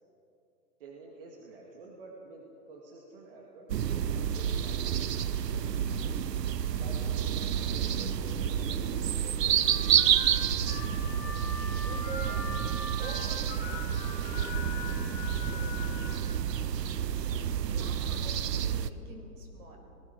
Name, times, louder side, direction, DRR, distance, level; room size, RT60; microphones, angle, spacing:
voice 1, 0.8-6.2 6.6-9.9, right 3 dB, 35° right, -1 dB, 2.1 m, -49 dB
sound 1, 3.7-18.9, right 9 dB, 75° right, 1.0 m, -29 dB
Harmonica, 9.6-16.2, left 3 dB, 25° left, 5.4 m, -41 dB
voice 2, 11.8-12.7 13.0-19.8, right 3 dB, 60° right, 2 dB, 5.5 m, -48 dB
29.5 x 19.5 x 4.7 m, 2.8 s
hypercardioid pair, 180°, 49 cm